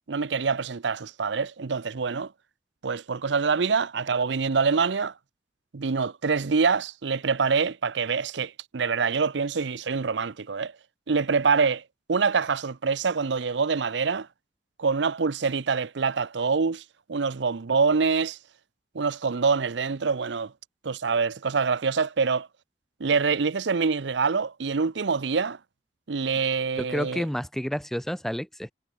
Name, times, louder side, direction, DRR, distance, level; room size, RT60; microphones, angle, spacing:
voice 1, 0.1-2.3 2.8-5.1 5.7-10.7 11.1-11.8 12.1-14.3 14.8-16.8 17.1-18.4 18.9-20.5 20.8-22.5 23.0-25.6 26.1-27.2, right 5 dB, 75° right, 0.7 m, -25 dB
voice 2, 26.8-28.7, equal, ahead, 0.4 m, -30 dB
head